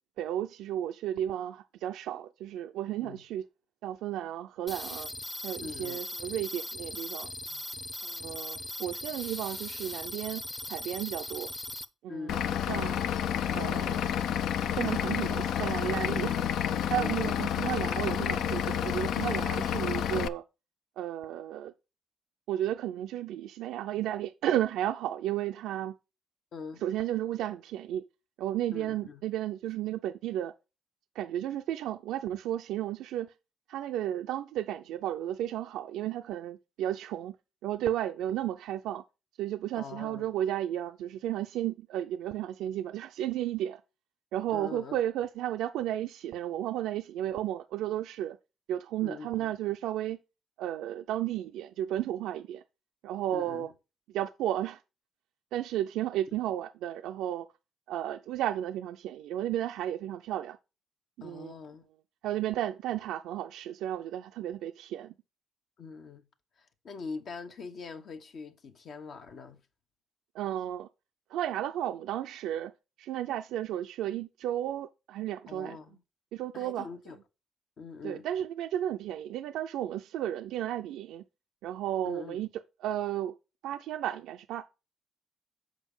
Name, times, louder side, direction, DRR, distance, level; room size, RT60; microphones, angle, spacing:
voice 1, 0.2-3.4 3.8-5.1 5.4-7.3 8.0-10.4 10.7-11.5 12.0-12.4 12.7-13.2 13.5-14.0 14.8-16.4 16.9-20.4 21.0-21.7 22.5-26.0 26.8-28.0 28.4-30.5 31.2-33.3 33.7-37.4 37.6-39.0 39.4-43.8 44.3-48.4 48.7-50.2 50.6-52.6 53.0-53.7 54.1-54.8 55.5-57.5 57.9-60.6 61.2-61.5 62.2-65.1 70.3-70.9 71.3-72.7 73.0-75.8 76.3-76.9 78.0-81.2 81.6-82.5 82.8-83.3 83.6-84.6, right 12 dB, 90° right, 0.4 m, -33 dB
sound 1, 4.7-11.8, left 1 dB, 15° left, 0.7 m, -39 dB
voice 2, 5.6-6.0 7.5-7.6 12.1-12.7 17.0-17.4 26.5-26.8 28.7-29.2 39.8-40.3 44.5-45.0 49.0-49.5 53.3-53.7 61.2-61.9 65.8-66.3 66.6-69.6 75.5-76.0 76.5-77.2 77.8-78.3 82.0-82.4, left 4 dB, 60° left, 1.2 m, -43 dB
Vehicle / Engine, 12.3-20.3, left 9 dB, 80° left, 0.4 m, -30 dB
7.2 x 5.1 x 5.4 m
cardioid pair, 90°, 0 cm